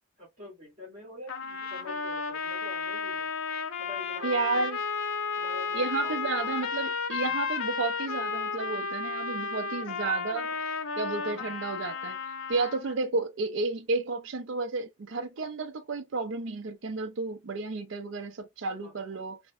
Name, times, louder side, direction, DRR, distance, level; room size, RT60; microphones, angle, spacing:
voice 1, 0.2-3.3 3.8-4.7 5.4-6.5 7.2-7.4 10.5-10.6 11.2-11.5 18.8-19.3, left 2 dB, 40° right, 1.8 m, -46 dB
sound 1, 1.3-13.0, left 4 dB, 85° left, 0.6 m, -33 dB
voice 2, 4.2-4.8 5.7-10.5 11.0-12.2 12.5-19.4, right 3 dB, 65° right, 0.5 m, -32 dB
3.7 x 2.0 x 2.3 m
head